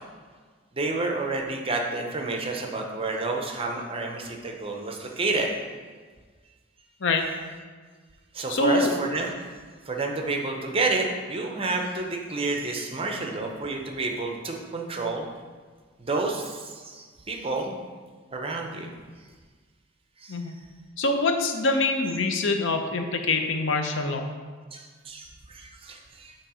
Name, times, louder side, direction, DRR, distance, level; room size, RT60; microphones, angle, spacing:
voice 1, 0.7-5.5 8.3-9.3 9.9-15.3 16.0-17.8 18.3-18.9 20.2-20.4 24.7-26.3, right 3 dB, 30° right, 2 dB, 0.6 m, -29 dB
voice 2, 8.5-8.9 20.3-20.5 21.0-24.3, left 3 dB, 65° left, 5 dB, 0.6 m, -25 dB
7.4 x 3.0 x 4.9 m, 1.5 s
head